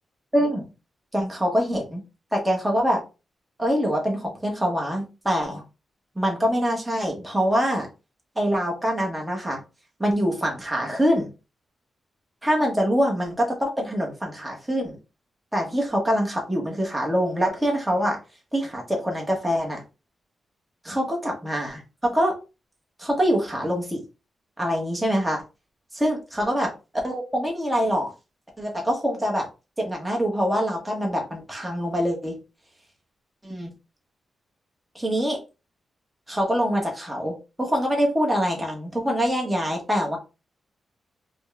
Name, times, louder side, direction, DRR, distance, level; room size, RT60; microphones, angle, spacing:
voice 1, 0.3-0.6 1.1-2.0 2.3-3.0 3.6-5.6 6.1-7.9 8.4-9.6 10.0-11.3 12.4-15.0 15.5-18.2 18.5-19.8 20.8-22.4 23.0-24.0 24.6-25.4 25.9-26.7 27.0-28.1 28.6-29.5 29.8-32.4 33.4-33.7 34.9-35.4 36.3-40.2, equal, 5° right, 0 dB, 1.0 m, -24 dB
4.9 x 2.1 x 2.4 m, 0.29 s
wide cardioid pair, 145°, 0 cm